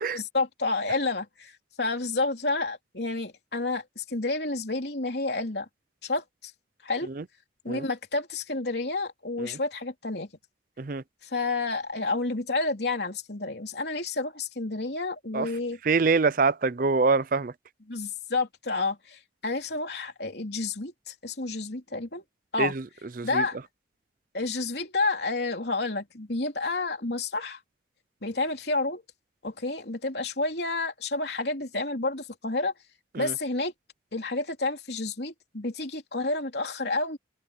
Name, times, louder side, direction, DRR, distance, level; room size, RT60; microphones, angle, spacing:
voice 1, 0.1-5.7 6.0-6.5 6.8-7.1 7.6-10.3 11.2-15.8 17.9-22.2 22.5-22.7 23.2-23.6 24.3-27.6 28.2-29.0 29.4-32.7 33.2-33.7 34.1-37.2, left 3 dB, 65° left, 3.3 m, -30 dB
voice 2, 15.8-17.5 22.6-22.8 23.2-23.4 33.1-33.3, right 4 dB, 50° right, 0.5 m, -25 dB
head